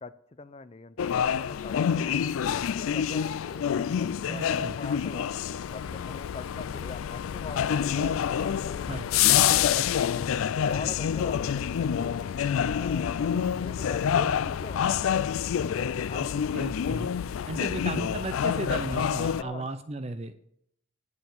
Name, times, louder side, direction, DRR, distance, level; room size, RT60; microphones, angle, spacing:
voice 1, 0.0-3.7 4.0-5.3 5.7-9.9 10.2-12.3 12.7-13.2 13.5-15.2 15.6-16.5 17.5-17.7 19.4-19.7, left 3 dB, 30° left, 13 dB, 0.5 m, -43 dB
sound 1, 1.0-19.4, left 8 dB, 85° left, 0.4 m, -27 dB
voice 2, 4.3-4.8 8.9-9.1 16.5-17.1 17.5-20.5, right 2 dB, 30° right, 10 dB, 0.6 m, -35 dB
9.5 x 8.2 x 7.1 m, 0.72 s
head